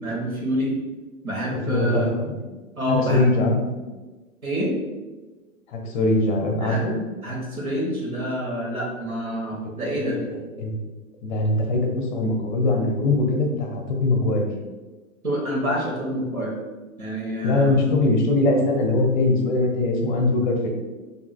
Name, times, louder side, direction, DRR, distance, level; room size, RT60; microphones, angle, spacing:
voice 1, 0.0-0.7 1.2-2.1 2.7-3.2 4.4-4.7 6.6-6.8 7.2-10.2 15.2-16.5 17.0-17.8, equal, 85° right, -3 dB, 1.2 m, -27 dB
voice 2, 1.7-2.3 2.9-3.6 5.7-6.9 10.3-10.7 11.2-14.5 17.4-20.7, left 2 dB, 35° left, 2 dB, 0.6 m, -21 dB
4.6 x 2.7 x 2.2 m, 1.2 s
figure-of-eight pair, 110°, 42 cm